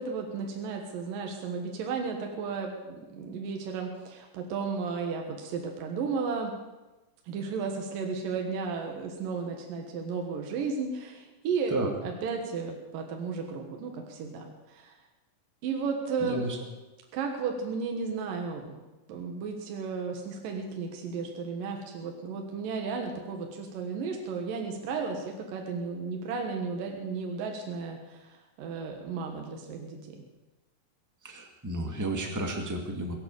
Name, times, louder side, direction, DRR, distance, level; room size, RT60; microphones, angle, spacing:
voice 1, 0.0-6.5 7.3-15.0 15.6-16.4 17.1-18.8 19.1-30.2, right 5 dB, 75° right, 2 dB, 3.0 m, -34 dB
voice 2, 16.2-16.6 31.2-33.1, right 1 dB, 10° right, 3 dB, 0.8 m, -32 dB
22.0 x 9.1 x 7.2 m, 1.1 s
omnidirectional pair, 4.1 m